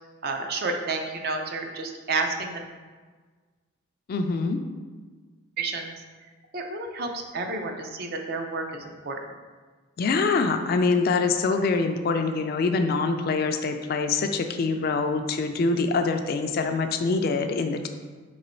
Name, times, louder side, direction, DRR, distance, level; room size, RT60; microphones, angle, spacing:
voice 1, 0.2-2.7 5.6-5.9 6.5-9.2, right 3 dB, 50° right, 4 dB, 0.5 m, -30 dB
voice 2, 4.1-4.6 10.0-17.9, left 4 dB, 50° left, 6 dB, 0.3 m, -24 dB
4.0 x 3.0 x 4.3 m, 1.4 s
head